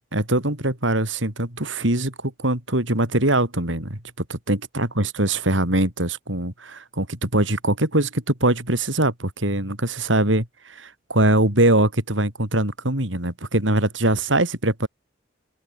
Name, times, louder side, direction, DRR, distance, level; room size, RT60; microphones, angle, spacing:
voice 1, 0.0-14.9, right 1 dB, 90° right, 5.9 m, -22 dB
open air
head